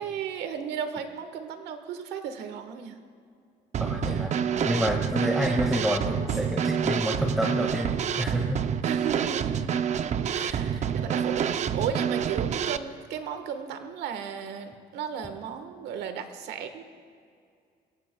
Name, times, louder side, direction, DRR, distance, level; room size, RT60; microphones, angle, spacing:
voice 1, 0.0-3.0 4.8-5.0 8.8-9.7 10.3-16.8, right 7 dB, 85° right, 8 dB, 1.4 m, -35 dB
Drum kit / Snare drum, 3.7-12.8, right 8 dB, 45° right, 0.6 m, -27 dB
voice 2, 3.8-7.9 8.2-8.6 10.8-10.9, equal, ahead, 0 dB, 1.8 m, -28 dB
22.5 x 17.0 x 2.3 m, 2.3 s
cardioid pair, 110°, 17 cm